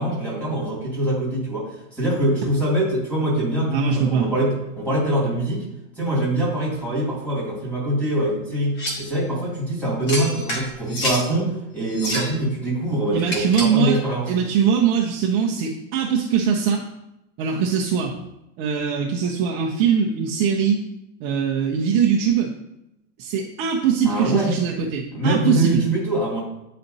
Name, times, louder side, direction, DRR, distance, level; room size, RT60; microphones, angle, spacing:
voice 1, 0.0-5.7 6.0-14.3 24.0-24.5 25.1-26.4, right 1 dB, 5° left, -7 dB, 2.5 m, -24 dB
voice 2, 3.7-4.3 13.1-14.0 14.3-16.8 17.4-18.1 18.6-20.8 21.2-22.5 23.2-25.8, right 7 dB, 40° right, -2 dB, 0.7 m, -21 dB
sound 1, 8.8-9.1 10.1-11.3 11.9-12.4 13.2-13.8, equal, 30° left, 1.2 m, -28 dB
9.0 x 4.2 x 2.7 m, 0.87 s
supercardioid pair, 155°, 37 cm